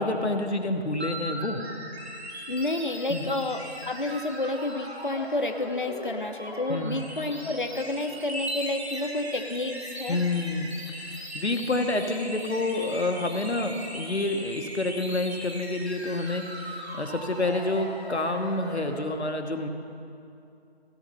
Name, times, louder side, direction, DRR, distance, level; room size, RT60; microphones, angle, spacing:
voice 1, 0.0-1.6 3.1-3.3 6.7-7.1 10.1-10.7 10.9-19.7, left 2 dB, 85° left, 6 dB, 1.2 m, -28 dB
sound 1, 1.0-19.1, equal, 70° right, 2.7 m, -39 dB
voice 2, 2.5-10.2, left 2 dB, 50° left, 6 dB, 0.8 m, -30 dB
16.0 x 6.8 x 5.7 m, 2.6 s
figure-of-eight pair, 175°, 32 cm